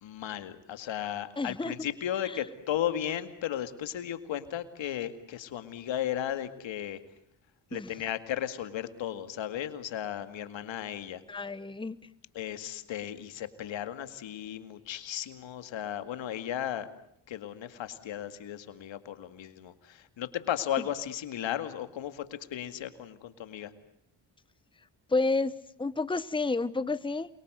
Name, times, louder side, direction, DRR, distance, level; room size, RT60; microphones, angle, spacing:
voice 1, 0.0-7.0 7.7-11.2 12.3-16.9 17.3-23.7, left 11 dB, 80° left, 10 dB, 2.2 m, -35 dB
voice 2, 1.4-1.7 2.2-2.4 7.7-7.9 11.3-12.0 25.1-27.3, left 3 dB, 10° left, 15 dB, 1.0 m, -30 dB
28.5 x 23.0 x 7.9 m, 0.74 s
cardioid pair, 75°, 45 cm